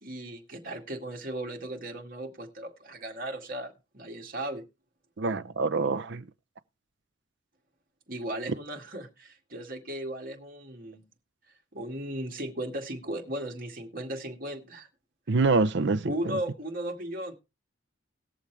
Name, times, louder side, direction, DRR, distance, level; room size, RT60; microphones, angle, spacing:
voice 1, 0.0-4.6 8.1-11.0 11.7-14.9 16.0-17.3, right 1 dB, 50° right, 2.1 m, -36 dB
voice 2, 5.2-6.3 15.3-16.4, right 3 dB, 65° right, 0.6 m, -26 dB
19.0 x 7.1 x 3.4 m
head